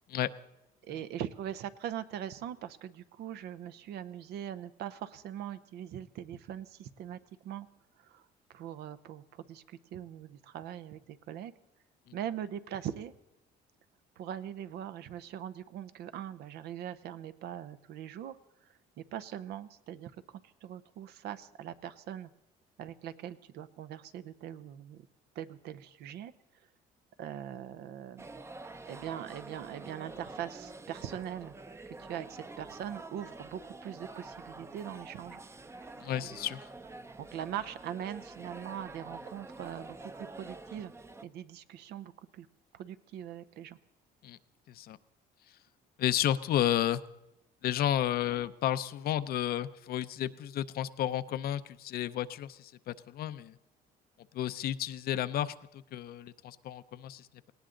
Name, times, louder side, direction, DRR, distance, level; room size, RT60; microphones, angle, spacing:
voice 1, 0.8-7.7 8.0-11.5 12.1-13.1 14.2-18.4 19.1-22.3 22.8-25.1 25.3-26.3 27.2-28.3 28.9-31.5 32.0-35.4 36.0-36.1 37.2-40.9 41.2-42.5 42.7-43.8, right 10 dB, 75° right, 12 dB, 0.8 m, -41 dB
sound 1, 28.2-41.2, right 3 dB, 15° right, 0.6 m, -47 dB
voice 2, 36.0-36.6 44.2-44.4 44.7-45.0 46.0-47.0 47.6-53.5 54.3-55.5 55.9-57.3, left 11 dB, 65° left, 13 dB, 0.6 m, -32 dB
18.5 x 18.0 x 3.8 m, 0.92 s
cardioid pair, 110°, 17 cm